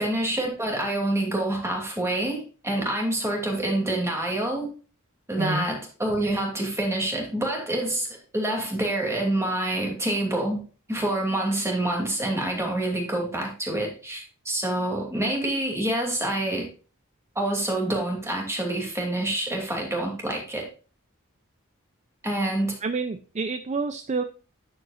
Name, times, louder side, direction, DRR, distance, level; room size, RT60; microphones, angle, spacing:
voice 1, 0.0-4.7 5.3-10.6 10.9-16.7 17.3-20.7 22.2-22.7, right 1 dB, 15° right, 0 dB, 2.7 m, -27 dB
voice 2, 22.8-24.2, right 4 dB, 30° right, 9 dB, 0.4 m, -28 dB
10.5 x 7.5 x 2.5 m, 0.36 s
head